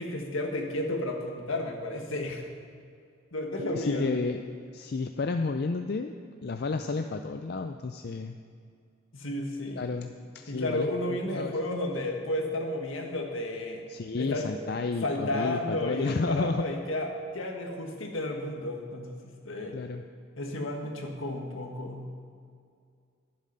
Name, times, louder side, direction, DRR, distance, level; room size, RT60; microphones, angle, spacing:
voice 1, 0.0-2.5 3.3-4.1 9.1-9.8 10.5-13.8 14.2-14.5 15.0-17.1 17.3-19.7 20.4-22.0, left 1 dB, 75° left, 2 dB, 1.8 m, -32 dB
voice 2, 3.7-4.5 4.7-6.1 6.4-8.4 9.8-10.9 11.3-11.5 13.9-16.6 19.7-20.0, left 3 dB, 50° left, 6 dB, 0.4 m, -31 dB
11.5 x 11.0 x 5.6 m, 2.3 s
head